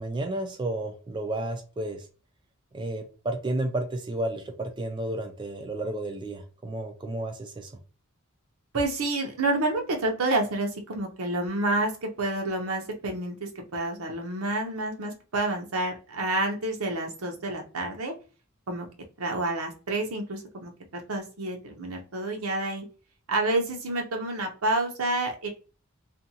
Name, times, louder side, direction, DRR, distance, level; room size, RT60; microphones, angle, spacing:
voice 1, 0.0-2.1 2.7-7.7, right 1 dB, 20° right, 4 dB, 0.3 m, -32 dB
voice 2, 8.7-18.1 18.7-18.9 19.2-22.9 23.3-25.5, right 2 dB, 80° right, 2 dB, 0.7 m, -29 dB
2.6 x 2.2 x 2.7 m, 0.35 s
head